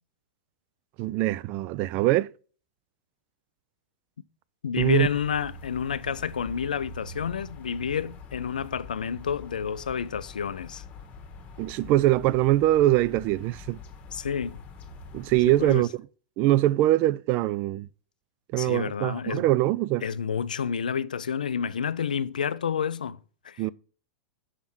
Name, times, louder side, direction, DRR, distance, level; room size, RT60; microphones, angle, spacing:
voice 1, 1.0-2.3 4.8-5.1 11.6-13.8 15.1-15.9 16.4-17.9 18.5-20.0 23.6-23.7, right 15 dB, 45° right, 0.3 m, -23 dB
voice 2, 4.6-10.8 14.1-14.6 15.6-15.9 18.6-19.4 20.0-23.2 23.4-23.7, left 7 dB, 85° left, 0.4 m, -29 dB
sound 1, 4.7-15.8, left 3 dB, 35° left, 1.3 m, -44 dB
6.4 x 3.6 x 6.0 m
hypercardioid pair, 100°, 4 cm